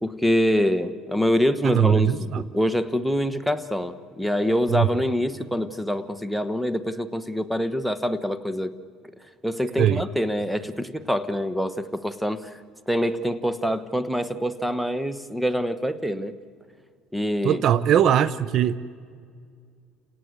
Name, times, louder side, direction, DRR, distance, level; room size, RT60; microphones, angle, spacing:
voice 1, 0.0-8.7 9.4-12.5 12.9-16.3 17.1-17.6, equal, 5° right, 13 dB, 1.2 m, -25 dB
voice 2, 1.6-2.4 4.7-4.9 9.8-10.0 17.4-18.8, right 10 dB, 55° right, 17 dB, 0.7 m, -20 dB
30.0 x 18.0 x 8.0 m, 2.1 s
cardioid pair, 105°, 0 cm